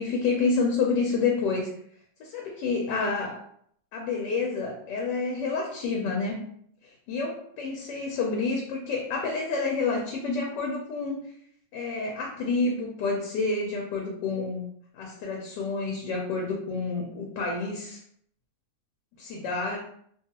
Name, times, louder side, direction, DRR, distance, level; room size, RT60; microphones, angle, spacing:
voice 1, 0.0-1.7 2.2-3.4 3.9-6.4 6.8-11.2 11.7-14.6 14.9-18.0 19.2-19.8, left 4 dB, 85° left, 0 dB, 1.2 m, -29 dB
2.9 x 2.3 x 2.8 m, 0.66 s
omnidirectional pair, 1.8 m